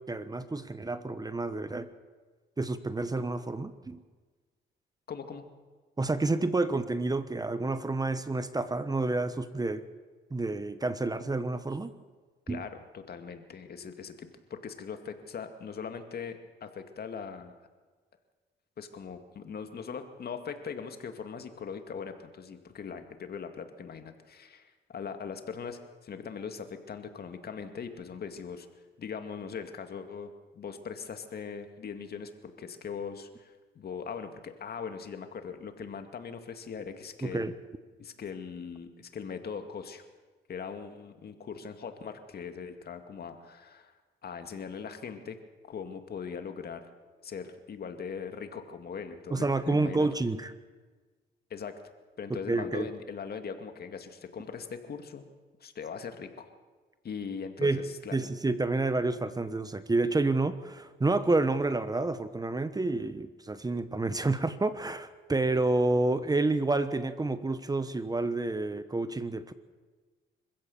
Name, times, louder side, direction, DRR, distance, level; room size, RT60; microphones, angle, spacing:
voice 1, 0.1-1.9 2.6-4.0 6.0-9.8 10.3-11.9 12.5-12.6 37.2-37.5 49.3-50.5 52.3-52.9 57.6-57.8 58.1-69.5, right 2 dB, 20° right, 12 dB, 1.2 m, -29 dB
voice 2, 5.1-5.4 12.5-17.5 18.8-28.7 29.0-37.5 38.0-40.0 40.5-43.9 44.2-45.4 45.6-46.9 47.2-50.1 51.5-51.7 52.2-55.2 55.6-56.5 57.0-58.2, left 6 dB, 50° left, 7 dB, 2.2 m, -40 dB
26.0 x 15.5 x 7.1 m, 1.4 s
cardioid pair, 90°, 20 cm